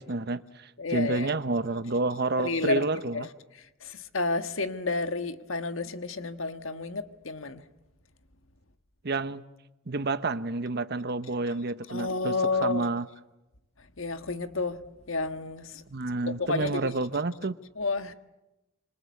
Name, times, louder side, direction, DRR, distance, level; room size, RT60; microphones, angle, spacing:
voice 1, 0.0-3.3 9.0-9.4 9.9-13.1 15.9-17.6, right 3 dB, 55° right, 1.0 m, -29 dB
voice 2, 0.8-1.3 2.4-2.8 3.1-7.6 11.9-12.9 13.8-14.8 15.1-15.8 16.3-16.9 17.8-18.1, left 3 dB, 85° left, 1.5 m, -31 dB
26.5 x 25.5 x 8.4 m
head